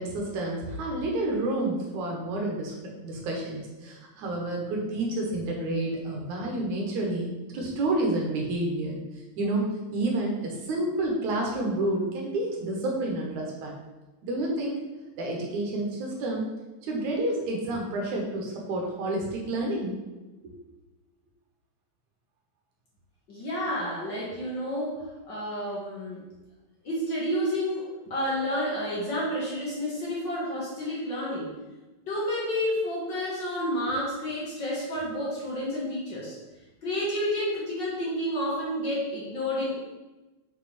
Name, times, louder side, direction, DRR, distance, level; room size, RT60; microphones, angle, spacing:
voice 1, 0.0-2.7 3.0-9.0 9.4-9.6 9.9-13.7 14.2-14.8 15.2-16.4 16.8-19.9 20.4-20.5, right 2 dB, 80° right, -1 dB, 2.7 m, -29 dB
voice 2, 23.3-26.2 26.8-31.5 32.1-36.4 36.8-39.7, equal, 45° left, -5 dB, 1.8 m, -30 dB
6.6 x 6.0 x 3.4 m, 1.1 s
omnidirectional pair, 3.3 m